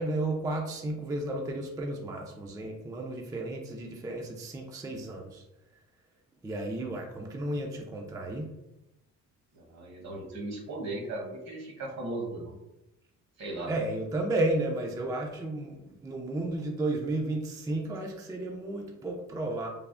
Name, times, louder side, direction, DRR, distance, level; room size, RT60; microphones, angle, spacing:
voice 1, 0.0-5.4 6.4-8.5 13.7-19.7, right 2 dB, 10° right, 1 dB, 0.3 m, -33 dB
voice 2, 9.5-12.5 13.4-13.7, right 2 dB, 60° right, -1 dB, 1.0 m, -37 dB
3.3 x 2.0 x 2.4 m, 0.92 s
cardioid pair, 90°, 30 cm